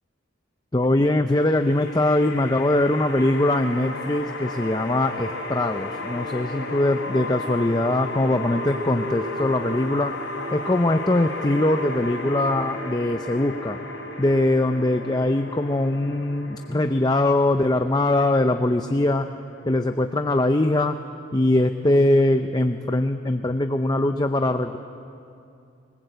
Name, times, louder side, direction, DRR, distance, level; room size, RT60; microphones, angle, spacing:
voice 1, 0.7-10.1 10.5-13.8 14.2-19.3 19.7-21.0 21.3-24.8, left 1 dB, 20° left, 7 dB, 0.6 m, -22 dB
sound 1, 1.3-20.3, left 2 dB, 75° left, 3.2 m, -34 dB
25.5 x 20.0 x 8.1 m, 2.5 s
head